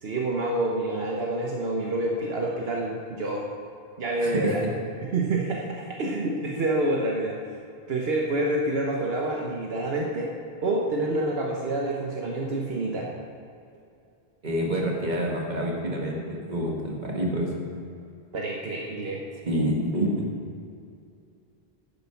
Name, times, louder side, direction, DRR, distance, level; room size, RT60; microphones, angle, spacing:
voice 1, 0.0-3.5 4.0-4.6 5.1-7.3 7.9-10.3 10.6-13.1 18.3-19.2, right 2 dB, 75° right, -2 dB, 1.3 m, -27 dB
voice 2, 4.2-4.5 14.4-17.5 19.4-20.2, equal, 45° right, -2 dB, 2.0 m, -27 dB
10.5 x 9.0 x 5.8 m, 2.5 s
omnidirectional pair, 1.0 m